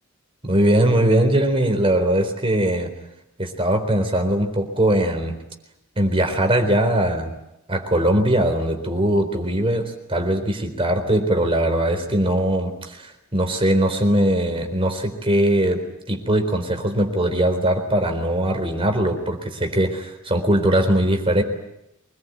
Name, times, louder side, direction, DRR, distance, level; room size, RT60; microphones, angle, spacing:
voice 1, 0.4-2.9 3.4-5.3 6.0-7.3 7.7-21.4, right 1 dB, 25° right, 5 dB, 4.0 m, -20 dB
25.5 x 21.0 x 9.3 m, 0.87 s
head